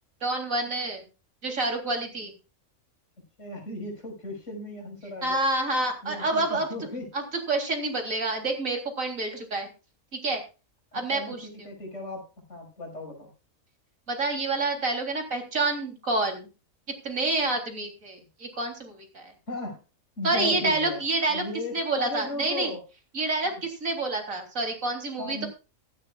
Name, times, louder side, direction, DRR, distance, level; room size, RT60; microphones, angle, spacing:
voice 1, 0.2-1.0 1.4-2.3 5.2-6.7 7.1-7.2 7.5-9.7 10.1-10.4 10.9-11.5 14.1-16.5 17.0-19.3 20.2-21.4 21.7-22.7 23.1-25.4, right 2 dB, 70° right, 4 dB, 3.9 m, -28 dB
voice 2, 3.4-5.4 6.0-7.0 9.3-9.4 10.9-13.3 19.5-19.8 20.2-21.0 21.3-22.8 23.4-23.5 25.2-25.5, left 1 dB, 55° left, 2 dB, 6.2 m, -36 dB
15.5 x 15.0 x 2.5 m, 0.31 s
omnidirectional pair, 1.5 m